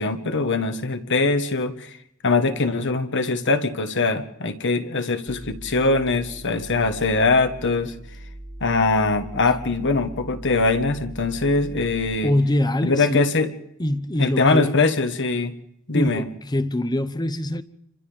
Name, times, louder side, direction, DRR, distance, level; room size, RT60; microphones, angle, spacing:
voice 1, 0.0-1.9 2.2-7.9 8.6-12.3 12.8-13.5 14.2-15.5 15.9-16.2, left 3 dB, 55° left, 1.5 m, -22 dB
sound 1, 5.3-12.2, right 1 dB, 30° right, 1.1 m, -40 dB
voice 2, 12.2-13.3 13.8-14.9 15.9-17.6, left 1 dB, 20° left, 0.8 m, -24 dB
29.5 x 25.0 x 3.5 m
head